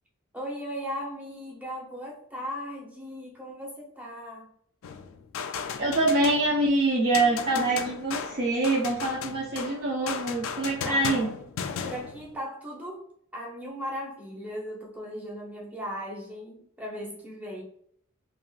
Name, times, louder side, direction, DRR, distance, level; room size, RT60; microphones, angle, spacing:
voice 1, 0.3-4.5 10.8-11.3 11.8-13.1 13.3-17.6, equal, 5° right, -3 dB, 0.7 m, -37 dB
sound 1, 4.8-6.7 7.1-12.4, left 6 dB, 65° left, 0.3 m, -36 dB
voice 2, 5.8-11.3, right 2 dB, 50° right, -4 dB, 0.5 m, -25 dB
3.5 x 2.4 x 2.3 m, 0.64 s
head